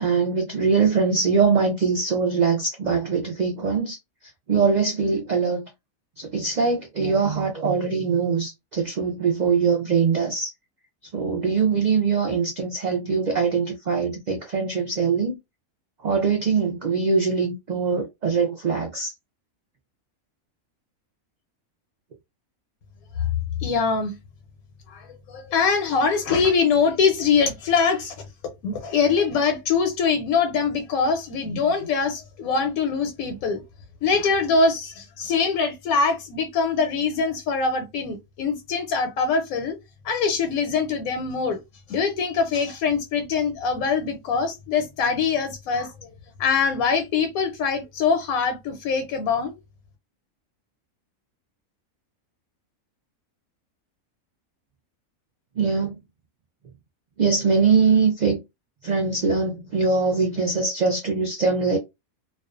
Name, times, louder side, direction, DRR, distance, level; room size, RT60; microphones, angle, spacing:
voice 1, 0.0-4.0 4.5-5.6 6.2-10.5 11.1-15.4 16.0-19.1 55.6-56.0 57.2-58.4 58.8-61.8, right 5 dB, 90° right, 0.4 m, -22 dB
voice 2, 23.6-24.2 24.9-28.1 28.6-33.6 34.0-39.8 40.0-41.6 41.9-46.1 46.4-49.6, left 5 dB, 85° left, 1.0 m, -23 dB
2.4 x 2.3 x 2.3 m
omnidirectional pair, 1.5 m